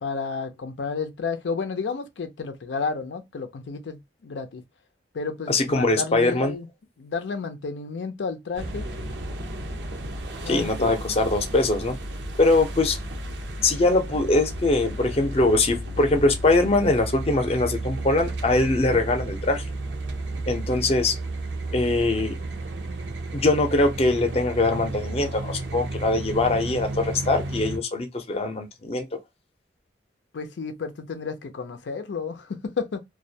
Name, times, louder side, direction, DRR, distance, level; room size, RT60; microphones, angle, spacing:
voice 1, 0.0-4.6 5.1-6.7 7.0-8.9 10.4-10.9 30.3-33.0, left 5 dB, 90° left, 0.5 m, -31 dB
voice 2, 5.5-6.6 10.5-12.0 12.4-13.0 13.6-19.6 20.5-21.1 21.7-22.4 23.3-29.2, left 2 dB, 35° left, 0.6 m, -22 dB
sound 1, 8.5-27.8, right 1 dB, 80° right, 0.6 m, -33 dB
2.2 x 2.1 x 2.6 m
head